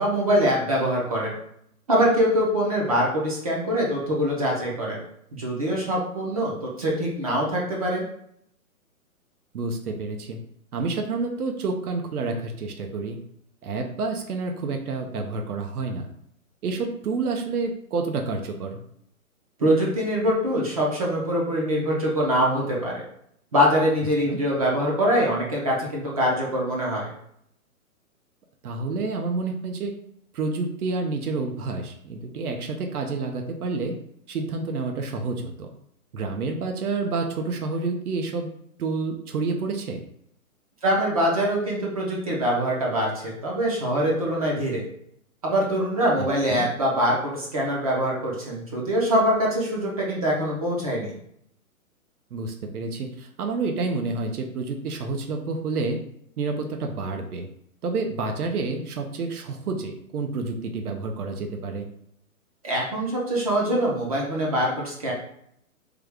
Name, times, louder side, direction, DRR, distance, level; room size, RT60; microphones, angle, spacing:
voice 1, 0.0-1.4 1.9-5.0 5.3-6.5 6.8-8.0 19.6-23.0 23.5-27.1 40.8-44.8 45.4-51.1 62.6-65.1, equal, 25° right, -3 dB, 0.5 m, -23 dB
voice 2, 9.5-10.4 10.7-13.2 13.6-16.1 16.6-18.8 24.3-24.4 28.6-29.9 30.3-33.9 34.3-35.7 36.1-38.5 38.8-40.0 46.2-46.7 52.3-56.0 56.4-57.5 57.8-61.9, right 3 dB, 80° right, 3 dB, 0.7 m, -29 dB
3.4 x 2.3 x 3.3 m, 0.71 s
hypercardioid pair, 150°, 44 cm